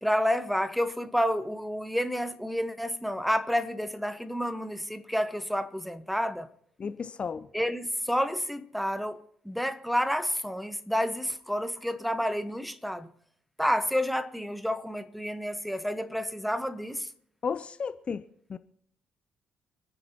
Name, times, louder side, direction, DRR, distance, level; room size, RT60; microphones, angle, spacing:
voice 1, 0.0-6.5 7.5-13.1 13.6-17.1, equal, ahead, 1.3 m, -29 dB
voice 2, 6.8-7.5 17.4-18.2 18.5-18.6, left 6 dB, 40° left, 0.6 m, -33 dB
28.0 x 10.0 x 3.0 m
figure-of-eight pair, 45°, 3 cm